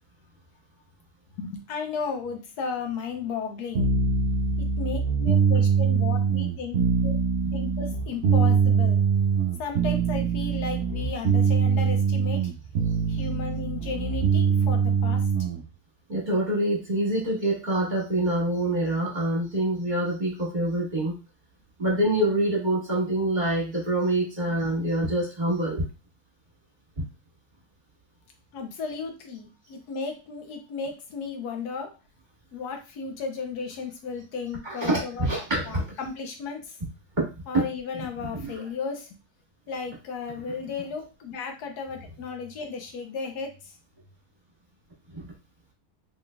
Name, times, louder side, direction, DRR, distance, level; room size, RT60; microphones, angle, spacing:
voice 1, 1.4-3.9 4.6-6.8 7.0-7.2 7.5-9.0 9.6-12.5 13.1-15.2 28.5-31.9 32.5-36.8 37.5-39.2 39.7-43.7, left 5 dB, 85° left, 4 dB, 1.3 m, -34 dB
sound 1, 3.7-15.6, right 6 dB, 60° right, 0.8 m, -23 dB
voice 2, 16.1-21.2 21.8-25.9 34.6-35.9 37.2-37.3 37.5-37.7 38.2-38.5 45.1-45.2, right 1 dB, 30° right, -4 dB, 1.7 m, -26 dB
3.8 x 3.8 x 2.3 m, 0.30 s
omnidirectional pair, 1.7 m